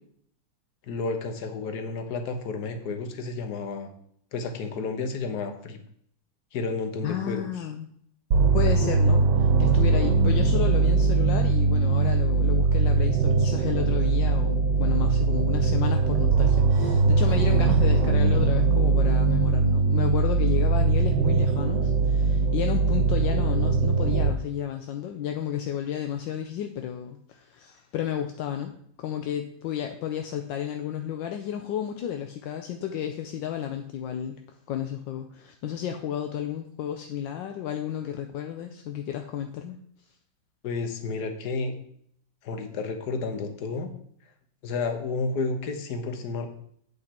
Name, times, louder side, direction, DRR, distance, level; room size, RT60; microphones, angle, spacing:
voice 1, 0.9-3.9 4.3-5.8 6.5-7.5 40.6-41.8 42.4-43.9 44.6-46.5, left 4 dB, 60° left, 7 dB, 1.6 m, -31 dB
voice 2, 7.0-7.9 8.5-28.7 29.0-34.4 34.7-39.8, left 9 dB, 80° left, 5 dB, 1.3 m, -32 dB
sound 1, 8.3-24.3, right 4 dB, 70° right, 1.5 m, -21 dB
8.3 x 6.5 x 4.4 m, 0.67 s
omnidirectional pair, 2.0 m